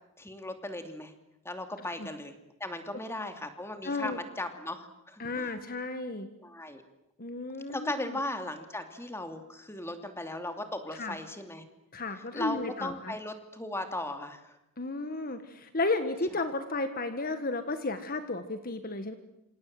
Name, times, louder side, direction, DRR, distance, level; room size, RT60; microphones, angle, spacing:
voice 1, 0.2-1.1 1.4-2.3 2.6-5.5 6.4-6.8 7.7-11.6 12.3-14.6, left 1 dB, 10° left, 7 dB, 2.8 m, -37 dB
voice 2, 3.8-4.2 5.2-6.3 7.2-8.2 10.9-11.1 11.9-13.1 14.8-19.2, left 3 dB, 40° left, 9 dB, 1.6 m, -33 dB
27.0 x 27.0 x 7.8 m, 0.86 s
head